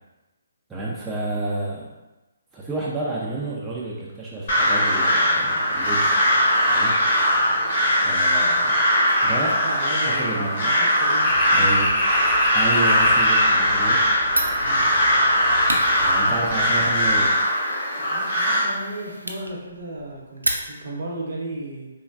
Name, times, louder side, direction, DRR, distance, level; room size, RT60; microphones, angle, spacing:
voice 1, 0.7-1.9 2.5-6.1 6.7-7.0 8.0-8.9 9.2-9.8 10.1-10.7 11.5-11.9 12.5-14.1 16.0-17.3, right 2 dB, 10° right, -6 dB, 0.4 m, -30 dB
Crow, 4.5-18.6, equal, 50° left, 1.0 m, -20 dB
voice 2, 9.4-11.7 14.6-14.9 18.0-21.9, right 2 dB, 55° right, -2 dB, 0.8 m, -35 dB
sound 1, 11.2-17.3, left 1 dB, 85° left, 1.2 m, -31 dB
Fire, 14.3-21.1, right 1 dB, 90° right, 0.3 m, -33 dB
3.4 x 2.2 x 2.3 m, 1.1 s
figure-of-eight pair, 135°, 0 cm